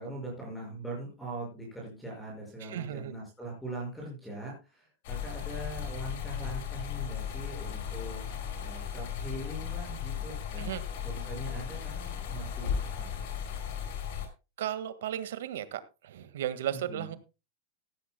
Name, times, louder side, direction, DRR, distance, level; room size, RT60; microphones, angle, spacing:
voice 1, 0.0-8.2 8.6-10.7 11.0-13.2 16.7-17.1, right 2 dB, 5° left, -2 dB, 5.7 m, -41 dB
voice 2, 2.6-3.1 10.6-10.8 14.6-17.2, right 11 dB, 90° right, 12 dB, 1.7 m, -35 dB
sound 1, 5.0-14.3, left 8 dB, 60° left, 4.8 m, -36 dB
15.5 x 14.5 x 2.2 m, 0.29 s
supercardioid pair, 175°, 0 cm